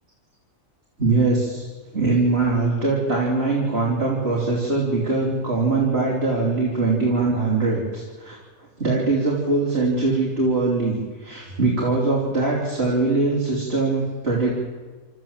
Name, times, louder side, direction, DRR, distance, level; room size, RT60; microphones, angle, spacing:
voice 1, 1.0-1.6 1.9-8.4 8.8-14.6, right 3 dB, 45° right, -4 dB, 3.9 m, -22 dB
29.0 x 13.5 x 7.4 m, 1.4 s
omnidirectional pair, 1.4 m